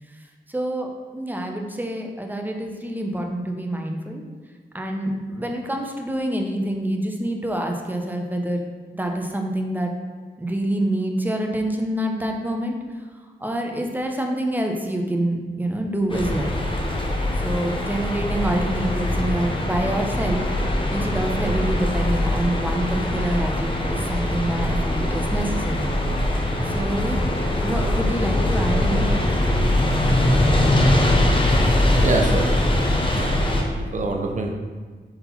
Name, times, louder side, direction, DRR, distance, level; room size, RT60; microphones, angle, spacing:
voice 1, 0.5-4.2 4.7-8.6 8.9-9.9 10.4-12.8 13.4-16.5 17.4-20.4 20.9-25.9 26.7-27.3 27.6-29.2, right 1 dB, 10° right, 2 dB, 0.8 m, -26 dB
sound 1, 16.1-33.6, left 1 dB, 30° left, 0.9 m, -22 dB
voice 2, 32.0-32.5 33.1-34.5, right 3 dB, 45° right, 2 dB, 0.8 m, -25 dB
4.5 x 3.9 x 5.5 m, 1.5 s
cardioid pair, 65°, 18 cm